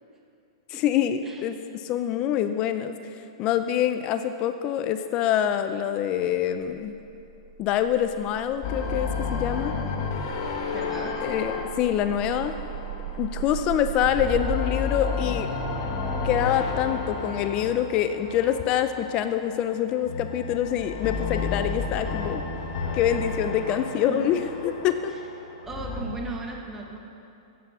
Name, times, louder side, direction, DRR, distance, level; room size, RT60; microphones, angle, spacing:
voice 1, 0.7-3.0 3.4-6.9 7.6-9.8 11.2-12.5 13.2-15.5 16.2-22.4 22.9-25.1, left 10 dB, 30° left, 9 dB, 0.5 m, -25 dB
sound 1, 6.6-14.6, right 12 dB, 45° right, 0.7 m, -38 dB
sound 2, 8.6-13.6 13.9-19.3 20.0-26.0, left 4 dB, 45° left, 1.7 m, -31 dB
voice 2, 10.7-11.2 23.7-24.3 25.1-25.2 25.6-27.0, right 2 dB, 10° right, 0 dB, 1.3 m, -37 dB
15.0 x 8.3 x 5.6 m, 2.7 s
hypercardioid pair, 150°, 3 cm